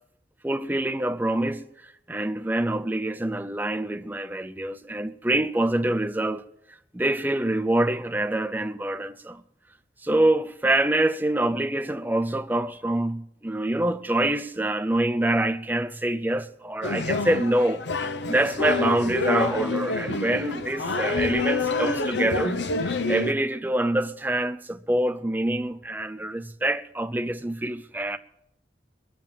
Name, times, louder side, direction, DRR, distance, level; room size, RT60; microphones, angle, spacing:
voice 1, 0.4-6.4 6.9-9.4 10.0-28.2, right 1 dB, 10° right, 0.5 m, -26 dB
sound 1, 16.8-23.3, left 3 dB, 75° left, 0.8 m, -27 dB
21.5 x 7.5 x 7.5 m
head